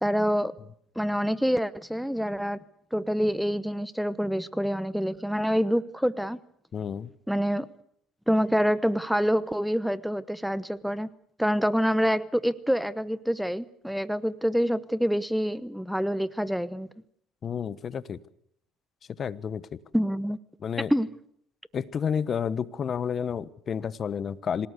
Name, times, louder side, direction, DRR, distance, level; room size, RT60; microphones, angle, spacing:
voice 1, 0.0-0.5 1.0-2.6 2.9-6.4 7.3-7.7 8.3-11.1 11.4-16.9 19.9-20.4 20.9-21.1, equal, ahead, 16 dB, 0.9 m, -26 dB
voice 2, 6.7-7.1 17.4-18.2 19.2-19.8 20.6-20.9 21.7-24.7, left 7 dB, 40° left, 17 dB, 1.1 m, -30 dB
26.5 x 17.5 x 8.2 m, 0.70 s
supercardioid pair, 95°, 0 cm